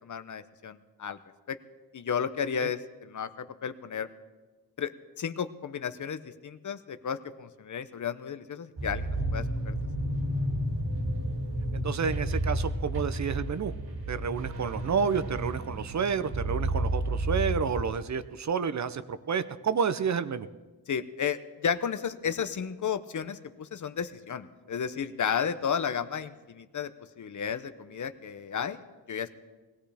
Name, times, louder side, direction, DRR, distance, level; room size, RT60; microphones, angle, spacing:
voice 1, 0.0-1.2 1.5-1.6 1.9-4.1 4.8-9.8 20.9-26.9 27.2-29.3, left 7 dB, 45° left, 12 dB, 0.7 m, -33 dB
sound 1, 8.8-17.8, right 1 dB, 65° right, 2.4 m, -31 dB
voice 2, 11.7-13.7 14.1-20.5, right 6 dB, 45° right, 12 dB, 0.5 m, -30 dB
20.0 x 17.0 x 3.4 m, 1.2 s
wide cardioid pair, 140°, 41 cm